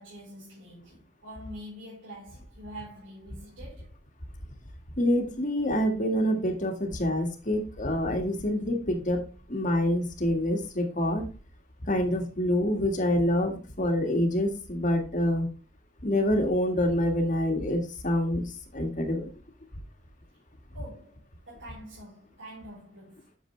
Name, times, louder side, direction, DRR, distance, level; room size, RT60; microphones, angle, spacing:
voice 1, 0.0-3.9 20.7-23.3, equal, 85° right, 4.1 m, -45 dB
voice 2, 5.0-9.2 9.5-11.3 11.9-15.5 16.0-19.3, left 1 dB, 40° left, 1.8 m, -26 dB
9.1 x 7.0 x 3.2 m
head